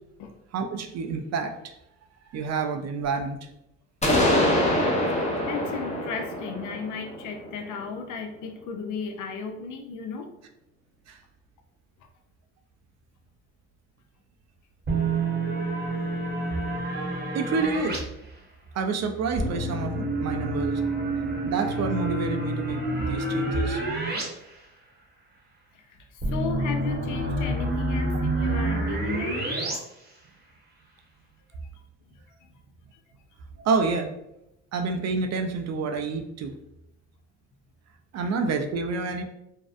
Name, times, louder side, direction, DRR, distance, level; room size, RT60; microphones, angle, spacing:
voice 1, 0.5-1.7 2.3-3.5 11.1-11.2 17.3-18.0 18.7-20.8 21.4-23.8 33.6-34.1 34.7-36.5 38.1-39.2, right 4 dB, 50° right, 5 dB, 0.4 m, -28 dB
sound 1, 4.0-7.8, left 1 dB, 20° left, 0.7 m, -25 dB
voice 2, 5.5-10.3 12.0-12.1 25.8-25.9 26.3-29.4 32.1-32.2 38.2-38.3, left 5 dB, 60° left, 6 dB, 0.5 m, -35 dB
sound 2, 14.9-18.0 19.4-24.2 24.5-24.6 26.2-29.8, right 2 dB, 30° right, 0.9 m, -28 dB
2.6 x 2.0 x 2.4 m, 0.83 s
supercardioid pair, 65°, 35 cm